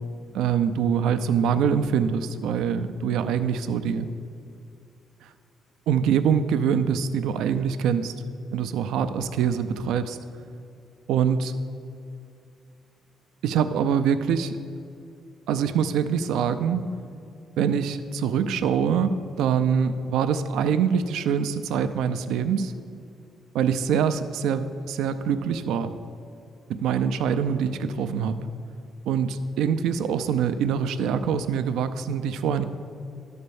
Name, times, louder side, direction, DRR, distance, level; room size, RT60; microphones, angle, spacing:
voice 1, 0.3-4.1 5.2-5.3 5.9-8.1 8.5-10.2 11.1-11.6 13.4-14.6 15.5-16.8 17.6-22.7 23.5-25.9 26.7-28.4 29.1-32.6, right 7 dB, 85° right, 10 dB, 0.5 m, -24 dB
12.0 x 4.3 x 7.0 m, 2.5 s
cardioid pair, 90°, 0 cm